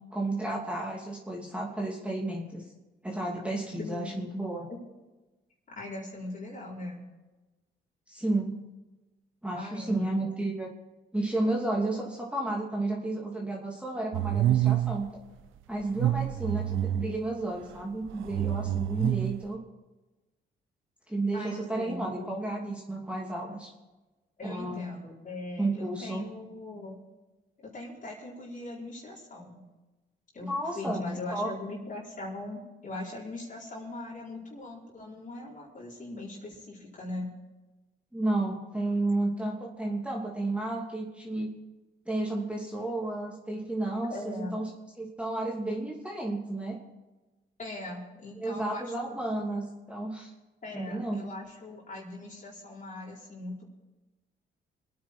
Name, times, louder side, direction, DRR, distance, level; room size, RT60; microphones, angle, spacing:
voice 1, 0.1-2.6 3.0-4.7 8.1-8.5 9.4-10.7 11.1-15.1 15.7-19.6 21.1-23.7 24.4-24.8 25.6-26.3 30.4-31.0 31.3-31.5 38.1-41.5 42.1-44.7 45.0-46.8 48.4-50.3 50.7-51.3, right 2 dB, 5° right, -2 dB, 2.9 m, -32 dB
voice 2, 3.8-4.2 4.7-4.8 5.7-7.0 9.5-10.3 21.3-22.4 24.4-27.0 27.6-29.6 30.3-37.3 44.1-44.5 47.6-49.2 50.6-53.7, left 2 dB, 40° left, -5 dB, 4.4 m, -40 dB
sound 1, 14.1-15.0 15.8-17.2 18.1-19.4, right 12 dB, 85° right, 0.6 m, -27 dB
24.0 x 9.7 x 4.7 m, 1.1 s
cardioid pair, 90°, 20 cm